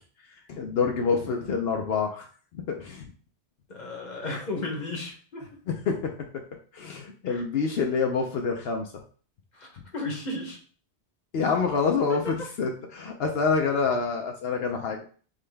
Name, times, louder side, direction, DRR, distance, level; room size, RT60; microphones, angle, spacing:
voice 1, 0.5-2.3 2.5-3.1 5.7-6.1 6.7-8.9 11.3-15.0, left 5 dB, 70° left, 2 dB, 0.8 m, -27 dB
voice 2, 3.7-5.4 7.3-7.4 9.5-10.6 12.1-12.2, left 2 dB, 45° left, 1 dB, 1.0 m, -34 dB
3.8 x 3.2 x 3.3 m, 0.42 s
omnidirectional pair, 1.1 m